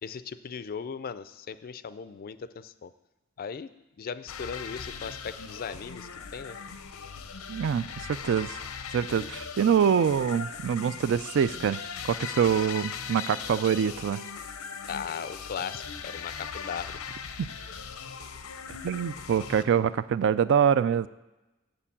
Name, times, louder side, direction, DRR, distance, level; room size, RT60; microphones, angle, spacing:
voice 1, 0.0-2.9 3.4-3.7 4.0-6.6 14.9-17.0, left 6 dB, 45° left, 14 dB, 0.4 m, -38 dB
sound 1, 4.3-19.6, left 6 dB, 85° left, 0.7 m, -39 dB
voice 2, 7.5-8.6 8.9-11.8 12.0-14.2 18.8-21.1, right 7 dB, 60° right, 15 dB, 0.3 m, -25 dB
7.6 x 6.9 x 7.3 m, 1.0 s
head